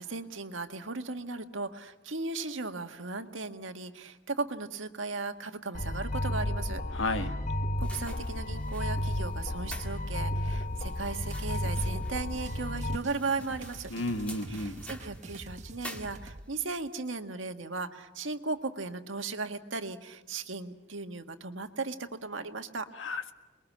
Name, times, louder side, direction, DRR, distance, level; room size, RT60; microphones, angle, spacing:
voice 1, 0.0-6.8 7.8-13.9 14.5-22.9, right 3 dB, 85° right, 7 dB, 1.7 m, -36 dB
sound 1, 5.7-13.0, left 1 dB, 40° left, 1.1 m, -32 dB
voice 2, 6.9-7.4 13.9-14.9 23.0-23.3, left 2 dB, 85° left, 8 dB, 1.6 m, -32 dB
sound 2, 7.8-16.6, equal, 5° left, 1.9 m, -49 dB
sound 3, 11.3-16.5, right 2 dB, 40° right, 1.1 m, -46 dB
28.0 x 22.0 x 8.6 m, 1.0 s
head